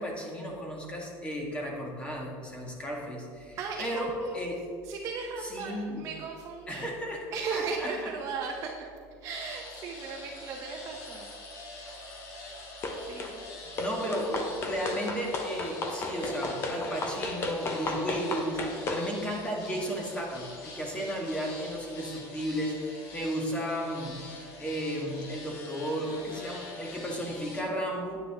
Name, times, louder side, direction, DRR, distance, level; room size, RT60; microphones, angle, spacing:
voice 1, 0.0-4.1 4.3-4.6 5.5-6.1 6.7-7.2 7.5-7.9 13.6-28.2, equal, 15° left, -1 dB, 1.7 m, -34 dB
voice 2, 3.6-4.5 4.8-6.9 7.3-8.9 9.2-11.3 12.9-13.5, right 5 dB, 40° right, 0 dB, 0.9 m, -36 dB
sound 1, 9.3-27.6, left 2 dB, 75° left, 2.3 m, -45 dB
sound 2, 12.8-13.4 13.8-19.1, left 2 dB, 30° left, 1.0 m, -33 dB
9.6 x 9.3 x 3.6 m, 2.4 s
cardioid pair, 150°, 8 cm